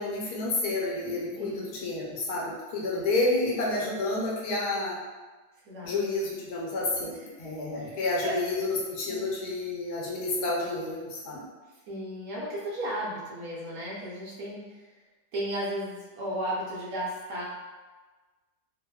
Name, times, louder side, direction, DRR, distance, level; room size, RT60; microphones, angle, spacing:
voice 1, 0.0-5.0 5.8-11.5, left 2 dB, 75° left, -4 dB, 1.1 m, -30 dB
voice 2, 5.6-6.0 7.8-8.4 9.1-9.3 11.7-15.0 15.3-17.4, equal, 65° right, -6 dB, 1.0 m, -35 dB
2.9 x 2.0 x 2.2 m, 1.3 s
omnidirectional pair, 1.7 m